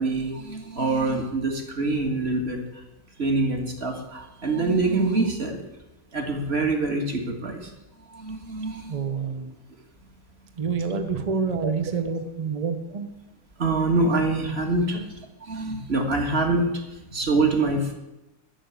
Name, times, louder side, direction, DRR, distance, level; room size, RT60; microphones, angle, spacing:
voice 1, 0.0-2.6 3.2-5.6 6.1-7.7 8.1-9.0 11.6-11.7 13.6-15.0 15.4-17.9, right 3 dB, 35° right, 3 dB, 1.8 m, -25 dB
voice 2, 8.9-9.5 10.6-13.1 14.9-15.1, right 5 dB, 55° right, 7 dB, 0.4 m, -28 dB
12.0 x 6.6 x 8.2 m, 0.98 s
omnidirectional pair, 2.0 m